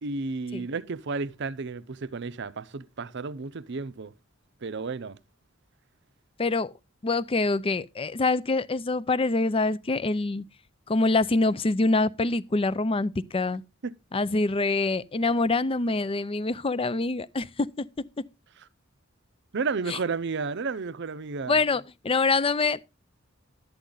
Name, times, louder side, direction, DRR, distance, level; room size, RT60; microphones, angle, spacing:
voice 1, 0.0-4.1 4.6-5.2 13.8-13.9 19.5-21.6, right 4 dB, 60° right, 0.6 m, -32 dB
voice 2, 6.4-6.7 7.0-10.4 10.9-13.6 14.1-17.9 19.9-20.0 21.5-22.8, left 3 dB, 25° left, 0.5 m, -25 dB
12.0 x 8.7 x 3.9 m
head